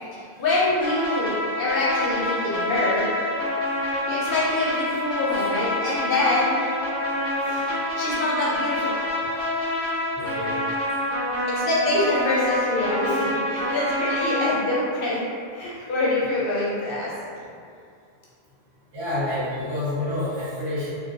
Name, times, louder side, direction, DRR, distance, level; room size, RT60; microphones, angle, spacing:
voice 1, 0.1-3.1 4.1-6.6 8.0-8.9 11.5-15.3 15.5-17.5, left 2 dB, 65° left, -6 dB, 0.7 m, -25 dB
sound 1, 0.8-14.5, left 1 dB, 5° left, 0.6 m, -27 dB
voice 2, 7.4-7.8 10.2-10.6 13.1-13.3 18.9-20.9, left 1 dB, 75° right, -12 dB, 1.3 m, -29 dB
2.2 x 2.2 x 2.6 m, 2.2 s
omnidirectional pair, 1.1 m